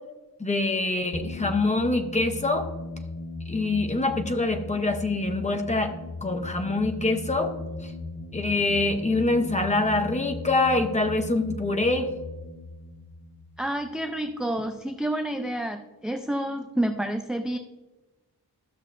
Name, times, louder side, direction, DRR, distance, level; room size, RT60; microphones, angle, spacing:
voice 1, 0.4-2.7 3.5-5.9 6.2-7.5 7.8-7.9 8.3-12.1, left 2 dB, 20° left, 5 dB, 0.7 m, -25 dB
sound 1, 1.1-14.3, left 2 dB, 75° left, 1.7 m, -38 dB
voice 2, 13.6-17.6, right 1 dB, ahead, 4 dB, 0.3 m, -29 dB
13.5 x 6.5 x 2.5 m, 1.1 s
wide cardioid pair, 160°, 39 cm